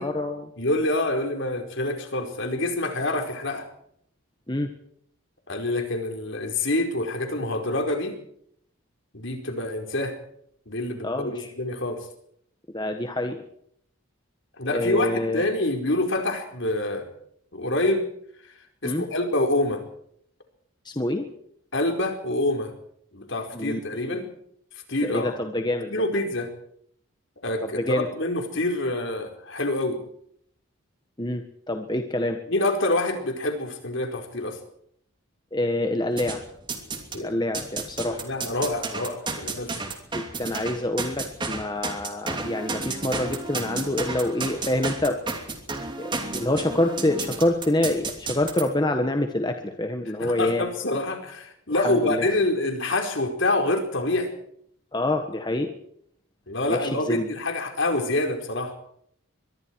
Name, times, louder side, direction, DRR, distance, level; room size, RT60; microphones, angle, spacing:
voice 1, 0.0-0.5 4.5-4.7 11.0-11.5 12.7-13.4 14.7-15.4 18.8-19.0 20.8-21.2 23.5-23.8 24.1-24.2 25.1-25.9 27.6-28.1 31.2-32.4 35.5-36.4 37.1-38.2 40.1-45.2 46.0-50.7 51.7-52.3 54.9-55.7 56.7-57.2, left 1 dB, 20° left, 5 dB, 1.5 m, -26 dB
voice 2, 0.6-3.7 5.5-8.2 9.1-10.2 10.7-12.1 14.6-17.1 17.5-18.1 18.8-19.8 21.7-22.7 23.1-24.3 24.9-25.4 25.9-26.5 27.4-30.1 32.5-34.6 37.1-37.3 38.0-39.8 50.2-54.3 56.5-58.7, left 2 dB, 55° left, 5 dB, 4.7 m, -26 dB
sound 1, 36.2-37.2 37.5-48.6, right 3 dB, 20° right, 2.9 m, -32 dB
24.5 x 22.0 x 4.7 m, 0.68 s
head